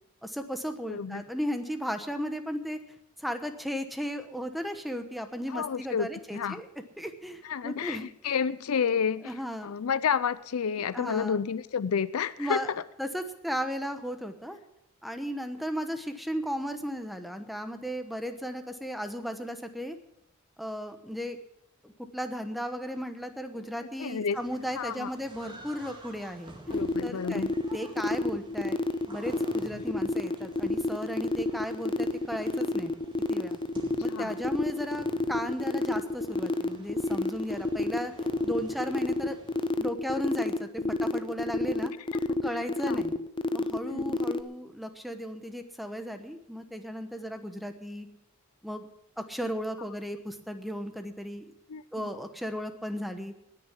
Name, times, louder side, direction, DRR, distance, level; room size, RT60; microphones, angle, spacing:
voice 1, 0.2-2.8 3.2-6.7 7.0-8.1 9.2-9.7 10.9-11.4 12.4-12.7 13.0-14.6 15.0-20.0 20.6-21.4 21.8-26.5 27.0-28.8 29.1-32.9 33.3-33.6 34.0-38.1 38.4-39.4 39.8-41.9 42.4-43.1 43.5-48.1 48.6-48.9 49.2-51.4 51.9-53.3, equal, ahead, 7 dB, 1.0 m, -35 dB
voice 2, 0.9-1.2 5.5-6.1 6.3-6.6 7.4-9.3 9.6-12.6 24.0-24.4 24.8-25.1 26.7-27.5 29.7-29.8 34.1-34.3 40.8-40.9 42.8-43.0 43.9-44.2 51.7-52.1, left 6 dB, 70° left, 17 dB, 0.5 m, -30 dB
sound 1, 24.3-39.7, right 1 dB, 20° right, 2.0 m, -52 dB
sound 2, 26.7-44.4, left 2 dB, 25° left, 0.5 m, -29 dB
19.0 x 6.7 x 7.3 m, 0.81 s
head